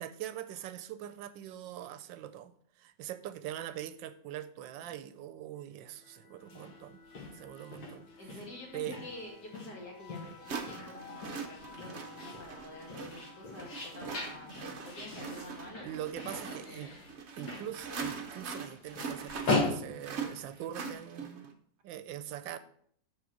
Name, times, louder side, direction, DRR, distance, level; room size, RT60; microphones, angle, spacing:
voice 1, 0.0-2.5 2.8-7.0 7.3-8.1 8.7-9.0 15.8-16.9 17.4-21.5 21.8-22.6, right 11 dB, 90° right, 1.3 m, -42 dB
sound 1, 5.7-15.2, left 5 dB, 40° left, 1.4 m, -55 dB
sound 2, 6.4-20.9, left 2 dB, 85° left, 2.3 m, -40 dB
voice 2, 8.2-14.6 14.8-16.9, left 1 dB, 65° left, 2.6 m, -48 dB
sound 3, 9.6-9.7 10.5-21.5, right 5 dB, 55° right, 0.8 m, -42 dB
6.5 x 4.9 x 6.2 m
omnidirectional pair, 2.0 m